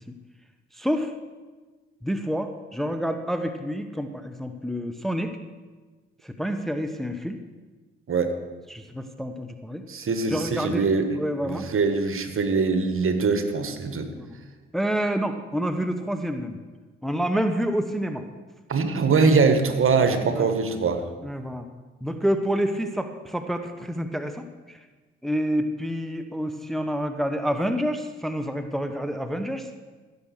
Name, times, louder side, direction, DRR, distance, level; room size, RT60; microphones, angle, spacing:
voice 1, 0.7-1.1 2.0-5.3 6.2-7.4 8.7-9.8 10.3-10.8 11.2-11.7 14.2-14.4 14.7-16.6 17.0-18.2 20.3-20.5 21.2-21.7 22.0-24.8 25.2-29.7, equal, ahead, 7 dB, 1.1 m, -28 dB
voice 2, 9.9-14.1 18.7-21.0, right 4 dB, 45° right, 8 dB, 1.6 m, -23 dB
15.0 x 7.2 x 6.5 m, 1.3 s
hypercardioid pair, 45°, 30 cm